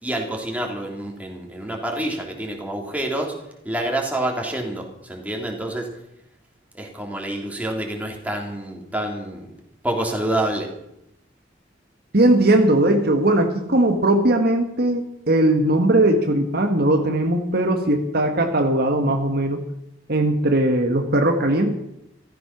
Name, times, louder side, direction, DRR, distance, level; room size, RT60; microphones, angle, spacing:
voice 1, 0.0-3.3 3.6-6.0 6.7-9.5 9.8-10.7, right 1 dB, 10° right, 0 dB, 3.2 m, -27 dB
voice 2, 12.1-19.6 20.1-21.7, right 1 dB, 55° right, 4 dB, 1.6 m, -19 dB
15.0 x 14.0 x 6.0 m, 0.80 s
head